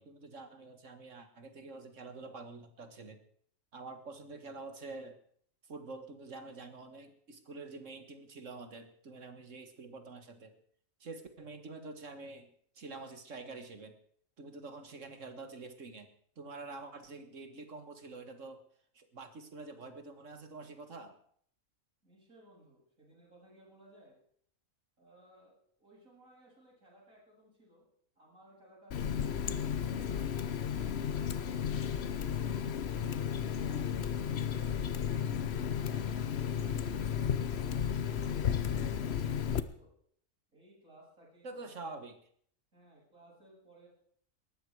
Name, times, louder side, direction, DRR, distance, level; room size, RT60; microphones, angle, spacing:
voice 1, 0.0-3.2 3.7-5.2 5.6-10.6 11.0-14.0 14.4-16.1 16.4-18.6 18.9-21.2 41.4-42.2, right 3 dB, 65° right, 8 dB, 2.0 m, -47 dB
voice 2, 22.0-24.2 25.0-25.5 25.8-27.9 28.2-30.4 31.1-35.2 35.7-39.9 40.5-41.9 42.7-43.9, right 1 dB, 85° right, -6 dB, 8.2 m, -60 dB
Water tap faucet, 28.9-39.6, left 8 dB, 55° left, 1.0 m, -33 dB
19.0 x 13.5 x 4.8 m, 0.62 s
omnidirectional pair, 1.4 m